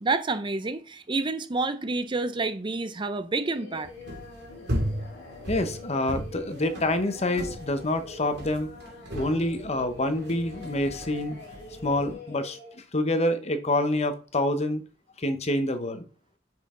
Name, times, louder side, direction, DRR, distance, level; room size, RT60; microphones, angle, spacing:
voice 1, 0.0-3.9, right 3 dB, 25° right, 0.5 m, -28 dB
Singing, 3.3-12.7, left 2 dB, 60° left, 2.4 m, -45 dB
sound 1, 3.8-12.1, equal, 60° right, 2.7 m, -37 dB
voice 2, 5.5-8.7 9.1-11.4 11.8-12.6 12.9-14.8 15.2-16.0, left 1 dB, 35° left, 0.9 m, -27 dB
9.2 x 5.6 x 3.8 m
head